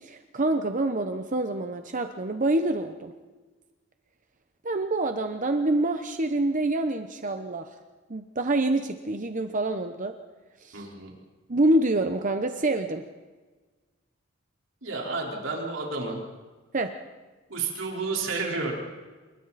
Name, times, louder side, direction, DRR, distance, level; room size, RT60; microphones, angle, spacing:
voice 1, 0.0-3.1 4.6-7.7 8.1-10.1 10.6-10.9 11.5-13.0 16.7-16.9, right 2 dB, 40° right, 7 dB, 1.0 m, -26 dB
voice 2, 10.7-11.1 14.8-16.2 17.5-18.8, right 3 dB, 70° right, -2 dB, 4.5 m, -31 dB
28.5 x 23.0 x 4.3 m, 1.3 s
head